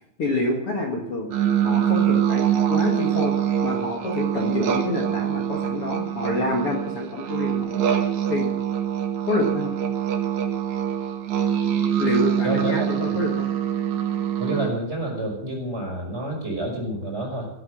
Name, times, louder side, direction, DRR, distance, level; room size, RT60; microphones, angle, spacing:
voice 1, 0.2-3.3 3.6-7.8 8.3-8.5 9.3-9.7 12.0-13.5, left 2 dB, 50° left, 0 dB, 2.7 m, -27 dB
sound 1, 1.3-14.7, right 9 dB, 70° right, 2.8 m, -24 dB
voice 2, 12.4-12.9 13.1-13.2 14.4-17.5, right 1 dB, 20° right, 0 dB, 5.6 m, -28 dB
14.5 x 13.0 x 6.3 m, 0.78 s
omnidirectional pair, 3.6 m